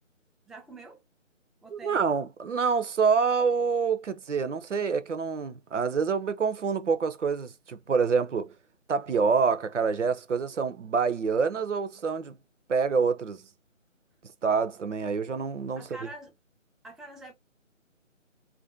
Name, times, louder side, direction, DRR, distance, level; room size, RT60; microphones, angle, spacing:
voice 1, 0.5-1.0 1.6-2.0 15.8-16.3 16.8-17.3, right 2 dB, ahead, 0.3 m, -45 dB
voice 2, 1.7-8.5 8.9-12.4 12.7-13.4 14.4-16.1, right 5 dB, 65° right, 0.5 m, -27 dB
2.5 x 2.1 x 2.5 m
figure-of-eight pair, 180°, 39 cm